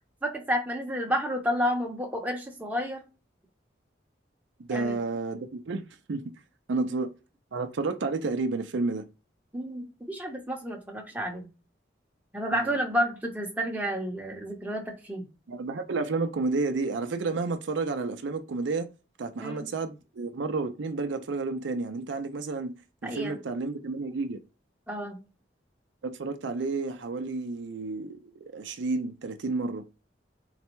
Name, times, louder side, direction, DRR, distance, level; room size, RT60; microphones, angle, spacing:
voice 1, 0.2-3.0 4.7-5.0 6.7-7.0 9.5-11.5 12.3-15.3 19.4-19.7 23.0-23.4 24.9-25.2, equal, 10° right, 0.8 m, -31 dB
voice 2, 4.6-5.8 6.1-6.3 6.7-7.1 7.5-9.0 12.5-12.8 15.5-18.9 19.2-22.7 23.0-24.4 26.0-29.8, right 3 dB, 80° right, 0.5 m, -31 dB
4.0 x 2.2 x 4.4 m
head